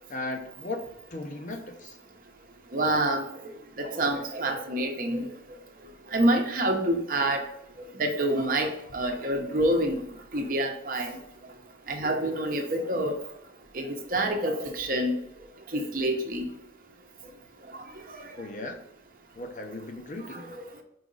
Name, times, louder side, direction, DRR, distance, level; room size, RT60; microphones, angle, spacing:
voice 1, 0.1-2.0 18.4-18.8 19.4-20.5, left 2 dB, 40° left, 4 dB, 0.7 m, -37 dB
voice 2, 2.7-3.2 3.8-5.2 6.1-7.4 8.0-10.0 10.3-11.1 11.9-13.1 13.7-13.9 14.1-15.1 15.7-16.4, right 1 dB, 50° right, 4 dB, 0.8 m, -27 dB
5.1 x 4.8 x 3.9 m, 0.76 s
head